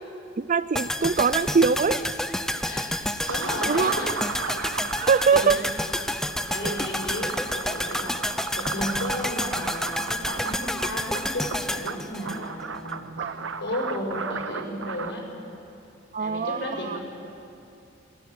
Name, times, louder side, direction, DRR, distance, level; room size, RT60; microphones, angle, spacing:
voice 1, 0.4-2.0 3.7-4.0 5.0-5.7 6.6-6.8 13.2-13.3 16.1-17.0, right 5 dB, 40° right, 16 dB, 0.5 m, -23 dB
sound 1, 0.8-12.9 13.2-13.3, left 1 dB, 5° left, 0.7 m, -29 dB
voice 2, 2.6-4.3 5.3-5.6 6.5-8.2 8.5-15.2 16.2-17.0, left 1 dB, 65° left, 0 dB, 5.9 m, -33 dB
sound 2, 3.3-15.1, right 5 dB, 80° right, 0.9 m, -36 dB
19.5 x 17.5 x 9.6 m, 2.7 s
head